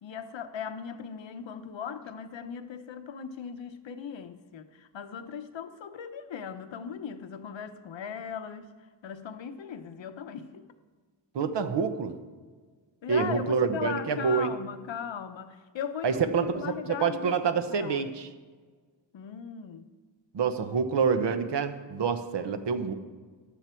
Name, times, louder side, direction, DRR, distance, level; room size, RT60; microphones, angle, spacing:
voice 1, 0.0-8.7 9.0-10.6 13.0-18.2 19.1-19.9, left 7 dB, 90° left, 9 dB, 0.9 m, -38 dB
voice 2, 11.3-12.1 13.1-14.5 16.0-16.6 16.9-18.3 20.3-22.9, right 6 dB, 70° right, 9 dB, 1.0 m, -27 dB
14.5 x 11.0 x 4.5 m, 1.5 s
wide cardioid pair, 175°, 44 cm